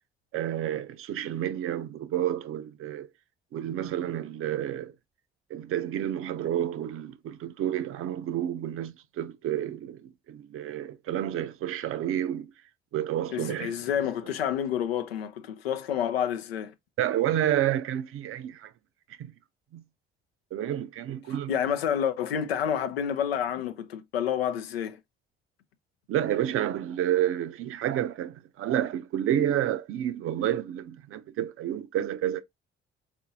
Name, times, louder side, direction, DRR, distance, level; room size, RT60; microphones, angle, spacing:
voice 1, 0.3-3.1 3.5-4.9 5.5-12.5 12.9-13.7 17.0-18.7 19.2-19.3 19.7-19.8 20.5-21.5 26.1-32.4, right 11 dB, 45° right, 0.5 m, -30 dB
voice 2, 13.3-16.7 21.5-25.0, left 9 dB, 85° left, 0.5 m, -29 dB
4.2 x 2.6 x 2.7 m
figure-of-eight pair, 45°, 30 cm